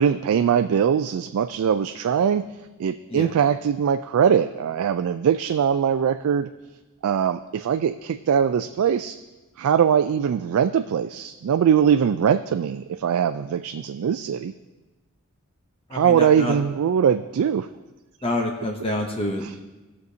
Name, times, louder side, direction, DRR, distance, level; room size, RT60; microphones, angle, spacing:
voice 1, 0.0-2.4 2.8-6.5 7.0-9.2 9.6-14.5 15.9-17.7, right 8 dB, 80° right, 8 dB, 0.3 m, -21 dB
voice 2, 15.9-16.6 18.2-19.6, left 1 dB, 25° left, 2 dB, 0.7 m, -27 dB
18.0 x 6.4 x 2.7 m, 1.2 s
head